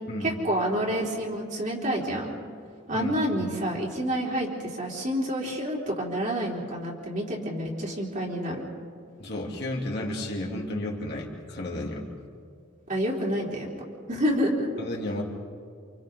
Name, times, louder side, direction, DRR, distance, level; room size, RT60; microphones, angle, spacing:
voice 1, 0.2-2.4 2.9-8.6 12.9-13.7 14.1-14.7, equal, 40° right, -3 dB, 3.6 m, -28 dB
voice 2, 9.2-12.1 14.8-15.2, left 1 dB, 55° left, -2 dB, 3.1 m, -32 dB
29.0 x 27.5 x 3.9 m, 2.2 s
head